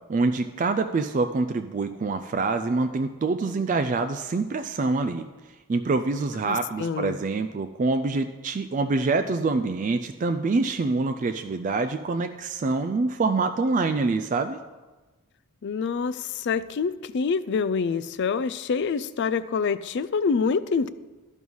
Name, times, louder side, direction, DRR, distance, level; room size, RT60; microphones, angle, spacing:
voice 1, 0.1-5.3 5.7-14.6, right 3 dB, 35° right, 8 dB, 0.3 m, -25 dB
voice 2, 6.5-7.2 15.6-20.9, left 5 dB, 50° left, 15 dB, 0.3 m, -26 dB
11.0 x 5.4 x 6.2 m, 1.2 s
head